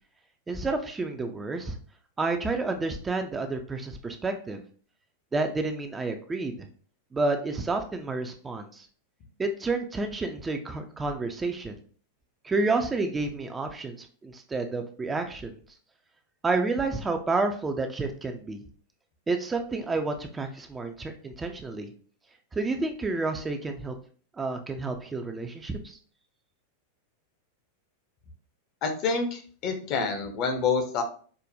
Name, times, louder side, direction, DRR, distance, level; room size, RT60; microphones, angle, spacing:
voice 1, 0.5-1.7 2.2-4.6 5.3-6.7 7.1-8.9 9.4-11.7 12.4-15.5 16.4-18.6 19.3-21.9 22.5-23.9 24.4-26.0, right 3 dB, 15° right, 5 dB, 0.4 m, -30 dB
voice 2, 28.8-31.0, left 5 dB, 40° left, 5 dB, 0.7 m, -27 dB
4.8 x 2.1 x 2.6 m, 0.43 s
figure-of-eight pair, 90°, 0 cm